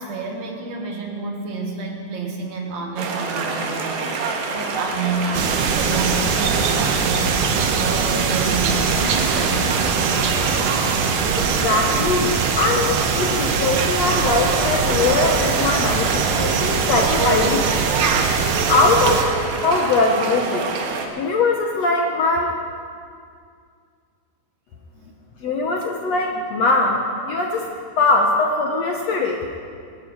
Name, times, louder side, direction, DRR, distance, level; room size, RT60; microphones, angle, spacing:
voice 1, 0.0-7.4 7.8-10.1, right 3 dB, 55° right, 1 dB, 2.6 m, -29 dB
sound 1, 3.0-21.1, right 4 dB, 70° right, 3.1 m, -27 dB
sound 2, 5.3-19.2, right 5 dB, 90° right, 1.4 m, -22 dB
voice 2, 11.4-17.7 18.7-19.3 19.6-20.7 21.2-22.5 25.4-27.6 28.0-29.5, left 3 dB, 75° left, 1 dB, 1.5 m, -21 dB
20.0 x 13.5 x 4.8 m, 2.2 s
omnidirectional pair, 4.5 m